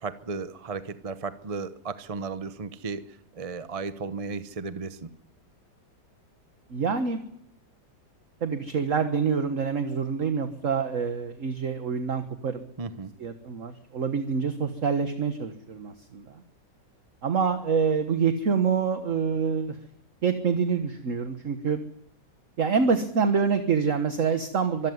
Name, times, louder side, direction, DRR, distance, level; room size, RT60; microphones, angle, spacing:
voice 1, 0.0-5.1 12.8-13.1, right 4 dB, 30° right, 12 dB, 0.7 m, -35 dB
voice 2, 6.7-7.2 8.4-12.7 13.2-16.4 17.2-19.7 20.2-21.8 22.6-24.9, right 6 dB, 45° right, 8 dB, 1.6 m, -26 dB
24.5 x 13.0 x 9.6 m, 0.76 s
omnidirectional pair, 1.9 m